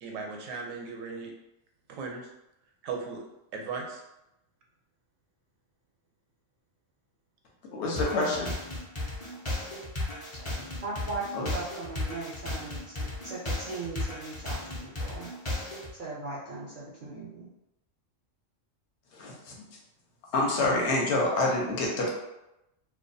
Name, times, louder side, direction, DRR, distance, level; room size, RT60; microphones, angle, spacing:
voice 1, 0.0-1.3 1.9-2.3 2.8-3.2 3.5-4.0, right 4 dB, 85° right, 1 dB, 1.0 m, -37 dB
voice 2, 7.7-8.5 11.3-11.5 19.1-19.5 20.3-22.1, left 2 dB, 65° left, -2 dB, 0.9 m, -27 dB
sound 1, 8.0-15.9, left 2 dB, 40° left, 0.4 m, -34 dB
voice 3, 10.3-15.3 16.0-17.5, right 3 dB, 60° right, -7 dB, 0.5 m, -39 dB
2.3 x 2.2 x 2.5 m, 0.89 s
omnidirectional pair, 1.3 m